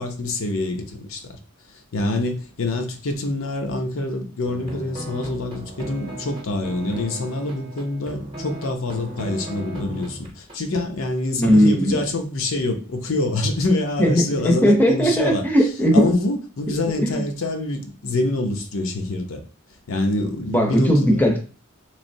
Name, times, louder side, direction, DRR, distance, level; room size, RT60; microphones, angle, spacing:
voice 1, 0.0-1.4 1.9-15.4 15.9-19.4 19.9-21.2, left 2 dB, 75° left, 0.6 m, -26 dB
sound 1, 4.4-10.8, right 1 dB, 25° right, 0.8 m, -36 dB
voice 2, 11.4-12.0 14.0-16.0 17.0-17.2 20.5-21.4, equal, 10° left, 0.6 m, -17 dB
3.7 x 3.1 x 2.6 m
head